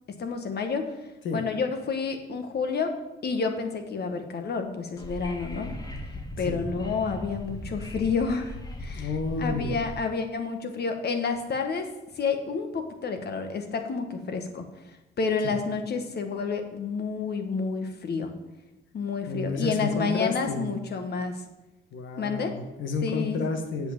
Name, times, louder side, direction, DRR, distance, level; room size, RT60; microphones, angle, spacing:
voice 1, 0.1-0.9 1.3-2.9 3.2-5.8 6.4-9.1 9.4-11.9 12.2-14.6 15.2-18.3 18.9-21.4 22.2-22.6 23.0-23.4, left 5 dB, 55° left, 6 dB, 1.6 m, -29 dB
Wind / Subway metro underground, 5.0-10.0, left 1 dB, 20° left, 1.5 m, -38 dB
voice 2, 8.9-9.8 15.4-15.6 19.3-20.7 21.9-23.9, left 3 dB, 75° left, 5 dB, 1.7 m, -31 dB
8.0 x 6.7 x 7.3 m, 0.97 s
cardioid pair, 90°, 20 cm